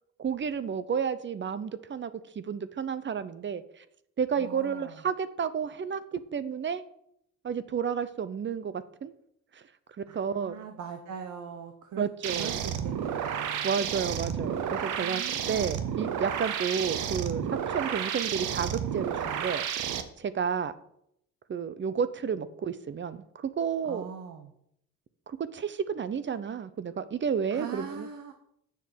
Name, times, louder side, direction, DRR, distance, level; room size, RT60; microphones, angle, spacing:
voice 1, 0.2-3.8 4.2-6.8 7.4-9.1 9.5-9.6 10.1-10.6 12.0-12.6 13.6-15.2 15.5-19.7 20.2-20.7 21.5-24.1 25.3-28.1, right 7 dB, 40° right, 14 dB, 0.7 m, -31 dB
voice 2, 4.4-5.0 10.1-12.1 12.3-13.7 15.0-15.9 23.8-24.5 27.5-28.3, right 7 dB, 70° right, 6 dB, 1.1 m, -41 dB
sound 1, 12.2-20.0, right 8 dB, 85° right, 1.0 m, -31 dB
7.5 x 6.5 x 7.3 m, 0.75 s
cardioid pair, 90°, 30 cm